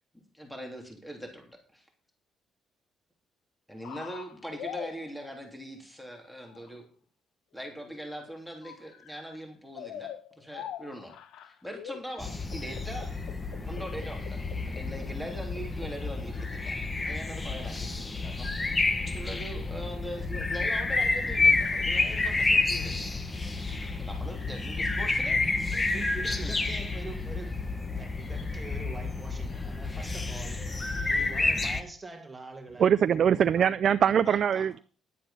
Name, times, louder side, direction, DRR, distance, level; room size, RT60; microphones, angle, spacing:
voice 1, 0.3-1.9 3.7-6.9 7.5-11.2 11.4-13.2 13.6-16.8 17.0-18.5 19.1-23.2 24.0-25.4 26.4-26.6 34.2-34.6, equal, 5° left, 3 dB, 3.1 m, -41 dB
sound 1, 3.8-5.2 6.5-6.7 7.6-8.2 8.6-9.4 9.8-15.9 16.4-16.5, left 9 dB, 80° left, 0.9 m, -43 dB
sound 2, 12.2-31.8, left 3 dB, 25° left, 1.4 m, -29 dB
voice 2, 25.2-27.5 27.9-33.4, right 3 dB, 20° right, 4 dB, 2.2 m, -44 dB
voice 3, 32.8-34.8, right 8 dB, 55° right, 13 dB, 0.4 m, -23 dB
11.0 x 8.5 x 5.8 m, 0.39 s
cardioid pair, 90°, 0 cm